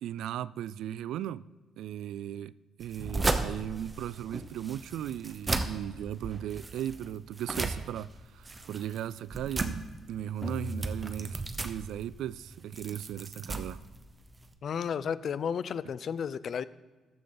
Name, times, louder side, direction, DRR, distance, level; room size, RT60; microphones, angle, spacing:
voice 1, 0.0-1.4 1.8-2.5 2.8-13.8, right 11 dB, 80° right, 0.3 m, -37 dB
sound 1, 2.8-14.5, right 3 dB, 25° right, 1.0 m, -36 dB
sound 2, 10.4-12.4, equal, 5° left, 1.3 m, -40 dB
voice 2, 14.6-16.6, left 7 dB, 55° left, 0.5 m, -32 dB
14.0 x 9.1 x 4.0 m
cardioid pair, 90°, 0 cm